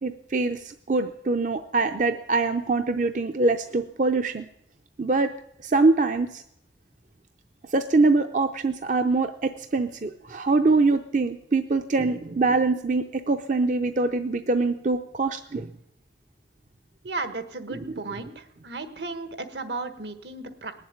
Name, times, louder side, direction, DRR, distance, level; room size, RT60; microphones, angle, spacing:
voice 1, 0.0-4.5 5.0-5.3 5.6-6.4 7.7-15.7, right 3 dB, 45° right, 8 dB, 0.6 m, -24 dB
voice 2, 17.0-20.7, right 3 dB, 70° right, 8 dB, 1.5 m, -34 dB
19.5 x 7.5 x 9.5 m, 0.79 s
head